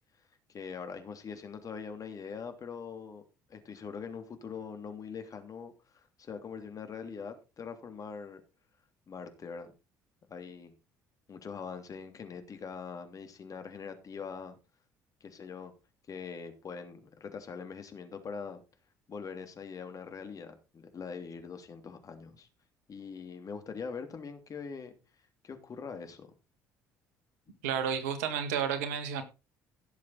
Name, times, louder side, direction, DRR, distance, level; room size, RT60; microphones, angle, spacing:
voice 1, 0.5-3.2 3.5-8.4 9.1-9.7 10.3-10.7 11.3-14.6 15.2-15.7 16.1-18.6 19.1-22.5 22.9-24.9 25.4-26.3 27.5-27.6, left 5 dB, 45° left, 3.0 m, -42 dB
voice 2, 27.6-29.2, right 8 dB, 80° right, 1.9 m, -31 dB
16.5 x 7.4 x 4.0 m
hypercardioid pair, 55°, 8 cm